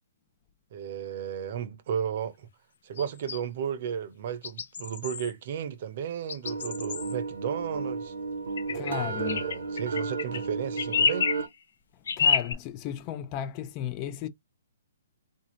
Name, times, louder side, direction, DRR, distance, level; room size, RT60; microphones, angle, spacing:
voice 1, 0.7-2.5 2.8-8.1 8.7-11.3, right 8 dB, 45° right, 0.7 m, -34 dB
sound 1, 3.0-3.4 4.4-5.3 6.3-7.1 8.6-8.9 9.3-10.5 10.8-11.4 12.1-12.5, left 6 dB, 70° left, 0.6 m, -28 dB
sound 2, 6.4-11.5, right 4 dB, 75° right, 0.9 m, -33 dB
voice 2, 8.7-9.4 12.2-14.3, left 10 dB, 25° left, 0.3 m, -34 dB
3.8 x 2.6 x 3.0 m
hypercardioid pair, 160°, 0 cm